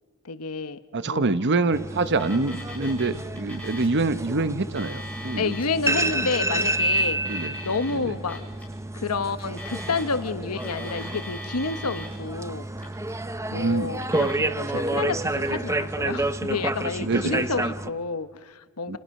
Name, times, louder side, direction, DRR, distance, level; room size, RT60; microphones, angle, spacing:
voice 1, 0.2-0.8 1.1-1.3 5.4-8.4 8.9-12.7 13.5-19.0, left 4 dB, 80° left, 11 dB, 1.1 m, -30 dB
voice 2, 0.9-5.5 7.2-7.6 7.9-8.1 13.5-13.9 17.0-17.5 18.9-19.0, right 3 dB, 55° right, 13 dB, 1.0 m, -25 dB
sound 1, 1.7-17.9, right 2 dB, 15° right, 0.9 m, -29 dB
Alarm, 2.1-3.1 3.4-4.0 4.6-5.7 6.5-7.9 8.3-8.6 9.4-10.3 10.6-12.2 12.7-13.2 13.9-14.3, left 1 dB, 5° left, 7.5 m, -41 dB
30.0 x 29.5 x 6.6 m, 1.5 s
head